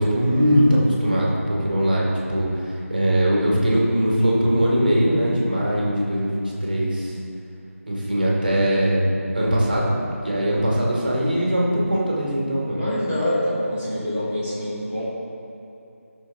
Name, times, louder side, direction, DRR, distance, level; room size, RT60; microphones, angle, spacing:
voice 1, 0.0-7.2 7.9-9.0 9.3-9.9 10.2-12.8, equal, 35° right, -4 dB, 2.0 m, -21 dB
voice 2, 12.8-15.0, left 1 dB, 10° left, -12 dB, 1.2 m, -25 dB
12.5 x 6.4 x 4.1 m, 2.8 s
figure-of-eight pair, 180°, 8 cm